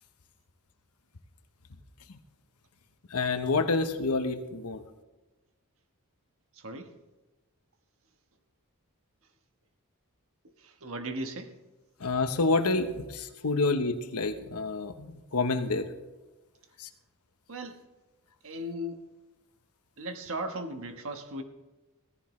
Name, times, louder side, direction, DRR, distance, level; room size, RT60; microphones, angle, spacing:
voice 1, 3.1-4.8 12.0-15.9 16.8-16.9, left 3 dB, 90° left, 9 dB, 1.0 m, -28 dB
voice 2, 6.5-6.9 10.6-11.5 17.5-17.8 18.4-19.0 20.0-21.4, right 1 dB, 65° right, 6 dB, 1.3 m, -37 dB
16.5 x 14.5 x 3.2 m, 1.1 s
head